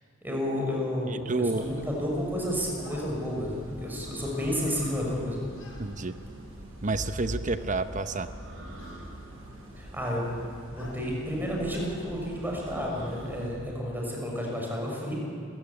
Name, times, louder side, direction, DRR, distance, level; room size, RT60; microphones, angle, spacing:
voice 1, 0.2-5.4 9.7-10.3 10.7-15.2, equal, 10° right, -2 dB, 6.0 m, -31 dB
voice 2, 1.1-1.7 5.8-6.2 6.8-8.3, right 3 dB, 40° right, 11 dB, 0.8 m, -29 dB
sound 1, 1.6-13.5, equal, 80° right, 8.0 m, -43 dB
sound 2, 2.8-3.1 5.6-5.8 7.1-7.2 8.8-9.0 10.8-11.0 11.7-11.9, left 3 dB, 75° left, 6.5 m, -49 dB
29.5 x 15.5 x 9.8 m, 2.5 s
head